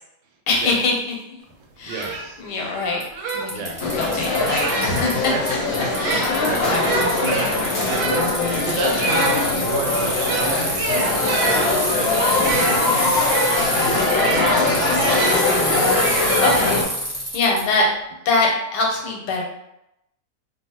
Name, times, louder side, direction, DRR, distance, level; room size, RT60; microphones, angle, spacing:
voice 1, 0.5-1.2 1.8-2.1 2.4-3.0 3.3-5.6 6.0-7.4 8.5-9.0 13.6-13.9 14.2-16.8 17.3-17.9 18.2-19.4, left 3 dB, 85° left, 0 dB, 1.3 m, -25 dB
sound 1, 1.5-1.6 1.9-5.1 5.8-15.4 16.0-17.1, right 4 dB, 75° right, 1.0 m, -28 dB
voice 2, 1.9-2.4 3.5-3.8 4.9-5.2 5.8-5.9 6.4-7.5 7.8-8.4 8.6-13.1 16.7-16.8, right 3 dB, 90° right, 2 dB, 1.2 m, -32 dB
Bicycle, 2.0-2.1 3.0-3.1 3.3-5.5 5.7-17.6, equal, 15° right, 0.6 m, -27 dB
sound 2, 3.8-16.8, left 3 dB, 60° left, 1.0 m, -22 dB
2.7 x 2.3 x 2.8 m, 0.82 s
omnidirectional pair, 1.8 m